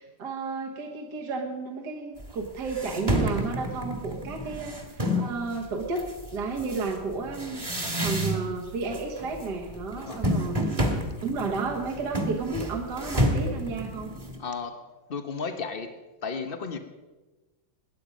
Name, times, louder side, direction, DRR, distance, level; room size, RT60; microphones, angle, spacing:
voice 1, 0.0-6.1 6.3-10.8 11.2-14.1, right 4 dB, 55° right, 1.8 m, -32 dB
sound 1, 2.2-2.3 2.7-5.4 6.0-8.6 8.9-9.4 9.7-14.4, equal, 15° right, 1.6 m, -29 dB
voice 2, 9.9-10.3 14.4-14.8 15.1-15.9 16.2-16.8, left 5 dB, 65° left, 0.5 m, -34 dB
21.0 x 8.8 x 5.1 m
omnidirectional pair, 2.3 m